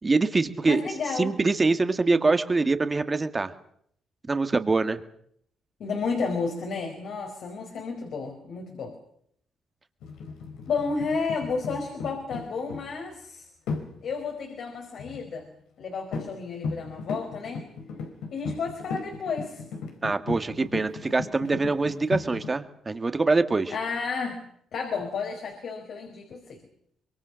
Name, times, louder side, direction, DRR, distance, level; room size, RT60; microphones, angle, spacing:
voice 1, 0.0-0.8 1.2-3.5 4.3-5.0 20.0-23.7, right 3 dB, 25° right, 9 dB, 1.8 m, -24 dB
voice 2, 0.7-1.3 5.8-8.9 10.7-13.5 14.0-15.5 15.8-17.7 18.3-19.6 23.7-24.4 24.7-26.6, left 4 dB, 65° left, 3 dB, 4.8 m, -31 dB
sound 1, 10.0-12.9 13.7-13.9 15.0-15.3 15.8-15.9 16.1-16.4 16.6-22.5, left 4 dB, 90° left, 4.4 m, -36 dB
25.5 x 23.0 x 6.4 m, 0.69 s
cardioid pair, 90°, 0 cm